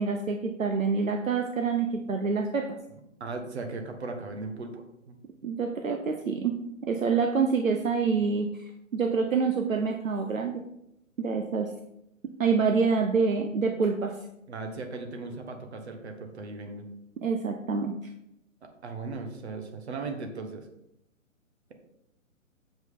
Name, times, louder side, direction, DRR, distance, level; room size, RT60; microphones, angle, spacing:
voice 1, 0.0-2.6 5.4-6.5 6.8-8.5 8.9-10.5 11.2-11.7 12.4-14.1 17.2-17.9, right 5 dB, 70° right, 4 dB, 0.9 m, -26 dB
voice 2, 3.2-5.2 14.5-16.8 18.6-20.6, right 3 dB, 50° right, 5 dB, 1.5 m, -37 dB
7.5 x 6.2 x 3.7 m, 0.82 s
figure-of-eight pair, 130°, 41 cm